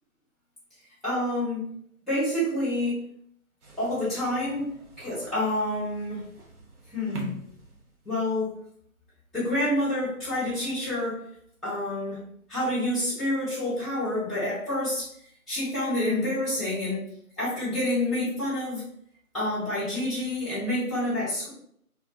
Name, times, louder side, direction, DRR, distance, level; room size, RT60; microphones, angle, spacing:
voice 1, 1.0-1.6 2.1-3.0 3.8-6.2 6.9-7.3 8.0-8.6 9.3-11.2 11.6-12.2 12.5-15.1 15.5-17.0 17.4-18.8 19.3-21.5, left 1 dB, ahead, -15 dB, 0.6 m, -28 dB
sound 1, 3.6-8.4, right 2 dB, 85° right, 0.8 m, -44 dB
2.3 x 2.1 x 2.5 m, 0.66 s
figure-of-eight pair, 170°, 44 cm